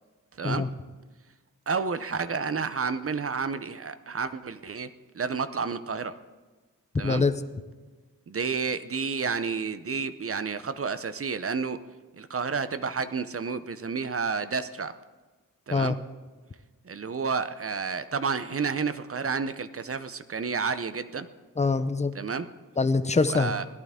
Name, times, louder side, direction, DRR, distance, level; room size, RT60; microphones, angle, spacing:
voice 1, 1.7-4.9 5.1-6.2 7.0-7.2 8.3-11.8 12.2-14.9 15.7-15.9 16.9-21.3 22.1-22.5 23.3-23.6, right 5 dB, 40° right, 13 dB, 0.6 m, -30 dB
voice 2, 7.0-7.3 15.7-16.0 21.6-22.1 22.8-23.5, left 3 dB, 20° left, 11 dB, 0.6 m, -24 dB
17.5 x 11.5 x 3.6 m, 1.3 s
wide cardioid pair, 90°, 34 cm